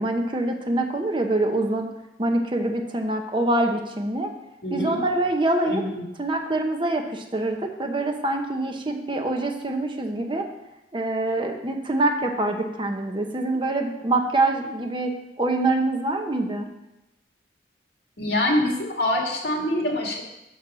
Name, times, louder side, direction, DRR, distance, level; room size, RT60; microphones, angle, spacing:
voice 1, 0.0-1.9 2.2-4.3 4.7-5.8 6.2-10.5 10.9-15.1 15.4-16.7, right 2 dB, 30° right, 4 dB, 0.8 m, -25 dB
voice 2, 4.6-5.0 5.7-6.0 18.2-20.2, left 1 dB, 70° left, 0 dB, 1.9 m, -25 dB
7.1 x 6.2 x 6.1 m, 0.92 s
head